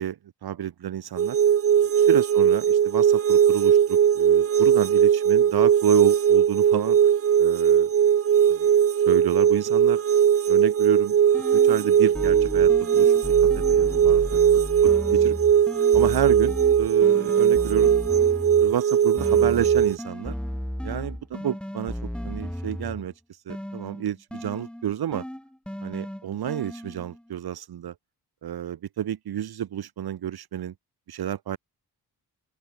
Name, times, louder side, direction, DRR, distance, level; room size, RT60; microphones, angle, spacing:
voice 1, 0.0-1.4 2.0-7.0 7.4-7.9 8.5-8.7 9.1-10.0 10.5-11.2 11.5-13.1 13.5-14.2 14.8-15.3 15.9-17.9 18.6-20.3 20.8-21.9 22.2-23.1 23.5-25.2 25.8-27.9 28.4-30.7 31.1-31.6, right 10 dB, 70° right, 2.4 m, -30 dB
sound 1, 1.2-20.0, right 8 dB, 35° right, 0.6 m, -19 dB
sound 2, 11.3-11.9 12.1-18.8 19.2-23.1 23.5-27.2, equal, ahead, 2.4 m, -34 dB
open air
wide cardioid pair, 155°, 39 cm